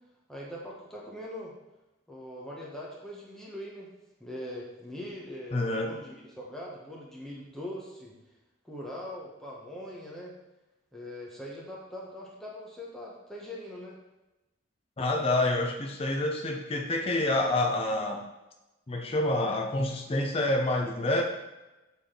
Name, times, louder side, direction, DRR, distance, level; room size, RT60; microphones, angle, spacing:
voice 1, 0.3-1.5 2.1-3.9 4.2-8.2 8.6-10.3 10.9-13.9, left 1 dB, ahead, -4 dB, 0.9 m, -41 dB
voice 2, 5.5-5.9 15.0-18.2 18.9-21.2, left 2 dB, 30° left, 2 dB, 0.6 m, -27 dB
6.9 x 4.1 x 3.7 m, 1.0 s
head